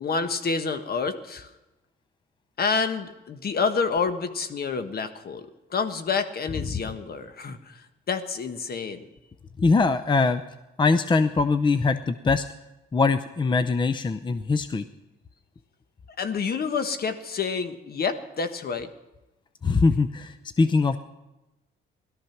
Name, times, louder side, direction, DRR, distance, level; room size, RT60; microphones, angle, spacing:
voice 1, 0.0-1.5 2.6-9.0 16.2-18.9, left 5 dB, 50° left, 9 dB, 1.4 m, -28 dB
voice 2, 9.6-10.4 10.8-12.4 12.9-14.8 19.6-21.0, left 4 dB, 25° left, 11 dB, 0.6 m, -22 dB
17.5 x 13.0 x 5.9 m, 1.0 s
cardioid pair, 90°, 20 cm